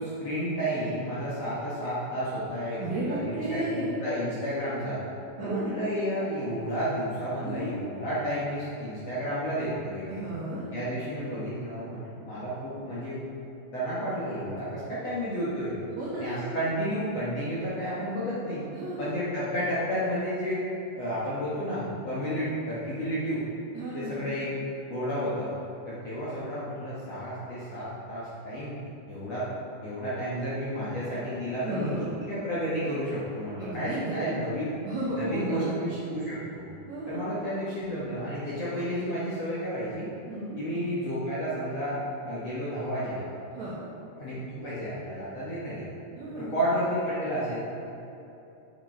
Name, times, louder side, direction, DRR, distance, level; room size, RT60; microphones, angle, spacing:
voice 1, 0.0-5.0 5.4-10.2 10.7-13.2 13.7-15.8 16.2-18.6 19.0-20.6 21.0-23.4 23.9-24.5 24.9-25.5 25.9-28.7 29.1-29.5 29.8-31.9 32.2-34.6 35.2-36.7 37.1-40.1 40.6-43.3 44.2-45.9 46.4-47.9, equal, 55° left, -10 dB, 1.8 m, -31 dB
voice 2, 2.8-3.9 5.4-5.7 7.4-7.7 10.1-10.7 15.9-16.3 18.7-19.1 23.7-24.3 31.6-32.0 33.6-34.3 34.8-35.7 36.8-37.3 40.2-40.6 43.5-43.8 46.1-46.5, right 1 dB, 70° right, -7 dB, 1.7 m, -33 dB
8.5 x 8.2 x 4.5 m, 2.8 s
omnidirectional pair, 5.0 m